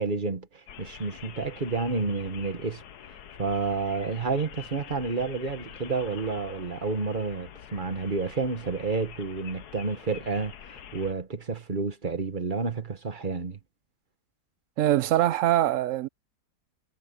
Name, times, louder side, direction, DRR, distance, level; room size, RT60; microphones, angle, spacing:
voice 1, 0.0-13.6, right 4 dB, 30° right, 1.4 m, -30 dB
sound 1, 0.7-11.1, left 9 dB, 75° left, 1.5 m, -46 dB
voice 2, 14.8-16.1, right 13 dB, 70° right, 0.8 m, -23 dB
omnidirectional pair, 1.7 m